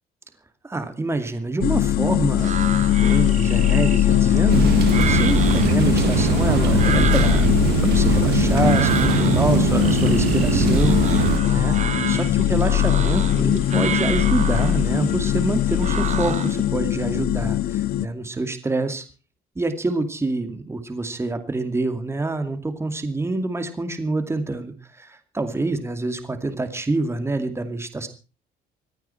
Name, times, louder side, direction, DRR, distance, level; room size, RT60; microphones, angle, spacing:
voice 1, 0.6-2.6 2.9-7.5 7.8-11.8 12.1-19.0 19.6-28.1, right 2 dB, 15° right, 8 dB, 2.4 m, -26 dB
sound 1, 1.6-18.1, left 12 dB, 65° left, 0.8 m, -20 dB
sound 2, 2.4-16.7, right 8 dB, 45° right, 1.4 m, -31 dB
sound 3, 4.5-11.4, right 9 dB, 75° right, 2.0 m, -22 dB
26.0 x 9.3 x 4.4 m, 0.34 s
cardioid pair, 110°, 17 cm